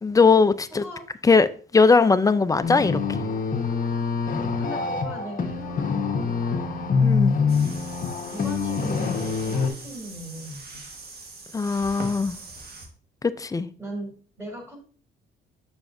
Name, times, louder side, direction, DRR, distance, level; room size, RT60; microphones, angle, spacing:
voice 1, 0.0-0.8 1.2-1.5 1.7-3.0 7.0-7.4 11.5-12.4 13.4-13.7, left 4 dB, 15° left, 0.4 m, -19 dB
voice 2, 0.7-1.1 4.6-6.9 7.8-10.8 13.8-14.8, right 1 dB, 15° right, 3.1 m, -39 dB
sound 1, 2.6-9.7, left 5 dB, 45° left, 1.2 m, -25 dB
sound 2, 7.5-12.9, right 3 dB, 55° right, 1.6 m, -41 dB
7.1 x 5.8 x 2.6 m
cardioid pair, 90°, 20 cm